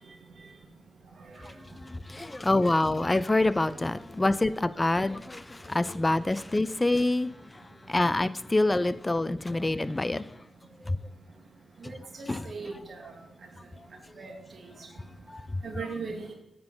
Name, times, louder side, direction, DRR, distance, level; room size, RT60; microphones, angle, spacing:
voice 1, 1.8-7.3 7.9-10.2 10.9-11.0 12.3-12.4 15.3-15.4, left 2 dB, 25° left, 15 dB, 0.4 m, -26 dB
voice 2, 11.8-13.1 14.2-14.3 15.6-16.3, right 4 dB, 65° right, 3 dB, 1.4 m, -38 dB
8.7 x 3.8 x 3.8 m, 0.94 s
supercardioid pair, 45°, 0 cm